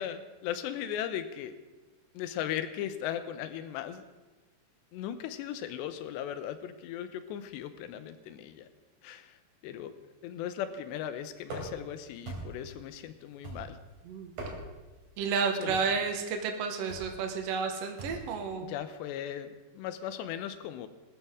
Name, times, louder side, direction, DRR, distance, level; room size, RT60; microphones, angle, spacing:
voice 1, 0.0-1.5 2.1-4.0 4.9-8.7 9.0-9.4 9.6-9.9 10.2-13.8 15.6-15.8 18.7-20.9, left 10 dB, 90° left, 11 dB, 3.0 m, -37 dB
sound 1, 11.4-11.9 12.3-12.7 13.4-13.9 14.2-14.9 15.7-16.0 16.9-17.2 18.0-18.3, right 2 dB, 55° right, 5.1 m, -41 dB
voice 2, 15.2-18.7, right 5 dB, 90° right, 4 dB, 1.4 m, -31 dB
20.0 x 13.5 x 3.7 m, 1.2 s
omnidirectional pair, 4.9 m